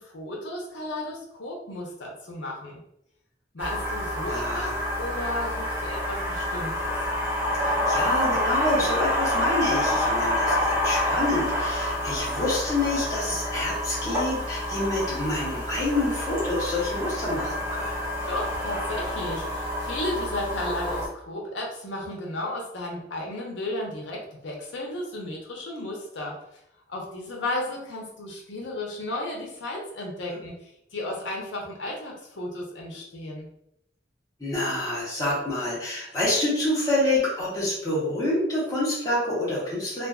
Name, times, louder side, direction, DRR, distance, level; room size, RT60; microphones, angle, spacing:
voice 1, 0.0-2.8 3.5-6.9 18.3-26.3 26.9-30.6 30.9-33.5, left 1 dB, 80° left, -1 dB, 0.7 m, -34 dB
sound 1, 3.6-21.1, left 1 dB, 10° right, 0.5 m, -28 dB
voice 2, 4.2-4.8 7.6-18.0 30.3-30.4 34.4-40.1, left 1 dB, 20° left, -7 dB, 0.9 m, -27 dB
2.4 x 2.4 x 2.3 m, 0.77 s
head